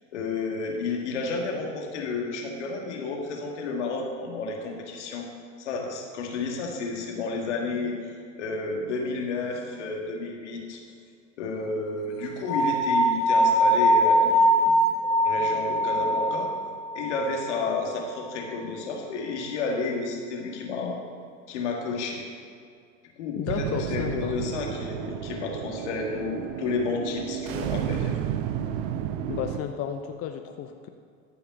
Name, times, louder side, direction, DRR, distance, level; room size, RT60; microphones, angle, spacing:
voice 1, 0.1-5.3 5.6-8.0 8.4-10.8 11.4-14.8 15.0-16.5 16.9-21.0 21.5-22.2 23.2-28.2, left 3 dB, 75° left, 1 dB, 1.9 m, -31 dB
sound 1, 12.5-17.6, equal, 60° left, 2.1 m, -22 dB
voice 2, 23.4-24.4 29.3-30.9, left 8 dB, 40° left, 6 dB, 0.7 m, -32 dB
sound 2, 23.5-29.6, right 10 dB, 60° right, 0.7 m, -32 dB
13.5 x 5.9 x 5.3 m, 2.3 s
hypercardioid pair, 75°, 35 cm